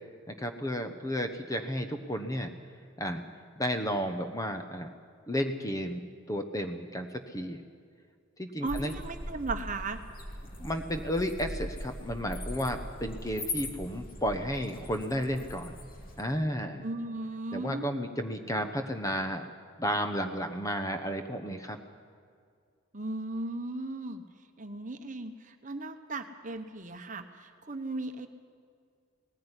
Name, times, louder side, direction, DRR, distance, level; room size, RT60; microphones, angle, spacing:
voice 1, 0.3-2.5 3.0-3.2 3.6-4.9 5.3-7.6 8.4-8.9 10.6-15.7 16.2-16.8 17.5-19.5 19.8-21.8, equal, 15° left, 7 dB, 1.0 m, -32 dB
voice 2, 8.6-10.0 16.8-17.9 22.9-24.2 24.6-28.3, right 2 dB, 35° right, 7 dB, 1.1 m, -36 dB
sound 1, 8.7-16.2, left 1 dB, 40° left, 2.4 m, -40 dB
18.5 x 15.5 x 9.8 m, 2.2 s
head